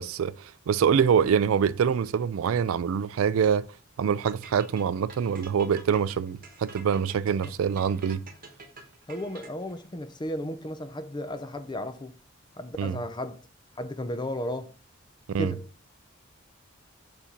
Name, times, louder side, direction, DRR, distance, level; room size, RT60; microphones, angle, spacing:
voice 1, 0.0-3.7 4.0-8.2 12.8-13.0 15.3-15.5, right 7 dB, 80° right, 0.3 m, -25 dB
sound 1, 4.3-9.8, right 4 dB, 45° right, 1.1 m, -47 dB
voice 2, 9.1-12.1 12.6-13.4 13.8-14.7 15.4-15.6, left 1 dB, 20° left, 0.5 m, -34 dB
4.9 x 4.2 x 5.2 m
head